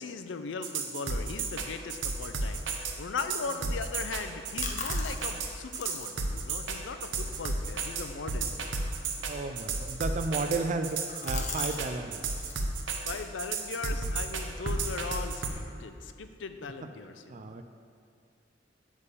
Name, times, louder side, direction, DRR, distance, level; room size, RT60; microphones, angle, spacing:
voice 1, 0.0-8.5 13.1-17.6, left 4 dB, 90° left, 9 dB, 0.5 m, -39 dB
sound 1, 0.6-15.5, right 4 dB, 85° right, 0.8 m, -32 dB
sound 2, 4.1-11.9 12.1-12.6 13.0-15.4, left 5 dB, 40° left, 0.8 m, -45 dB
voice 2, 9.2-12.3 17.3-17.6, right 3 dB, 40° right, 8 dB, 0.4 m, -33 dB
8.3 x 3.6 x 6.8 m, 2.3 s
head